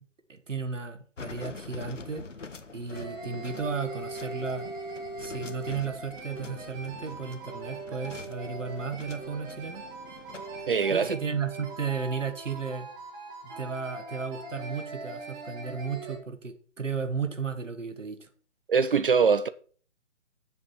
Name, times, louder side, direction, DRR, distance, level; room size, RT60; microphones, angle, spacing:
voice 1, 0.3-2.3 2.7-4.7 5.2-9.8 10.9-12.9 13.4-18.3, right 5 dB, 80° right, 1.4 m, -34 dB
sound 1, 1.2-10.9, left 4 dB, 75° left, 1.2 m, -45 dB
sound 2, 2.9-16.2, right 3 dB, 10° right, 1.0 m, -41 dB
voice 2, 10.7-11.2 18.7-19.5, right 5 dB, 45° right, 0.5 m, -23 dB
7.8 x 7.5 x 4.5 m
figure-of-eight pair, 135°, 37 cm